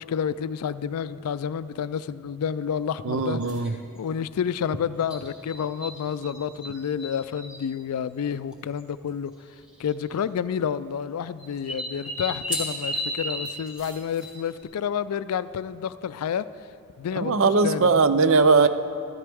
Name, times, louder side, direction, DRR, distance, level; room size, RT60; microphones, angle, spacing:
voice 1, 0.0-9.3 9.8-16.4 17.0-18.1, left 7 dB, 80° left, 15 dB, 0.3 m, -30 dB
voice 2, 3.0-3.7 17.2-18.7, right 4 dB, 60° right, 11 dB, 0.5 m, -19 dB
sound 1, 3.4-3.7 5.1-6.3 6.6-7.6 8.5-8.6 8.8-8.9 9.8-10.1 11.4-14.6, equal, 5° right, 2.1 m, -33 dB
14.0 x 13.5 x 3.5 m, 2.4 s
head